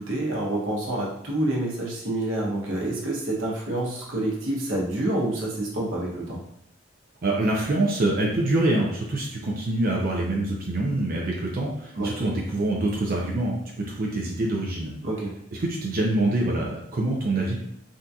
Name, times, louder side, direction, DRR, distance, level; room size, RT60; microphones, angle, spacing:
voice 1, 0.0-6.4 12.0-12.1 15.0-15.3, right 1 dB, 85° right, -3 dB, 0.9 m, -27 dB
voice 2, 7.2-14.9 15.6-17.6, right 2 dB, 50° right, -2 dB, 0.5 m, -25 dB
3.7 x 2.7 x 2.3 m, 0.76 s
head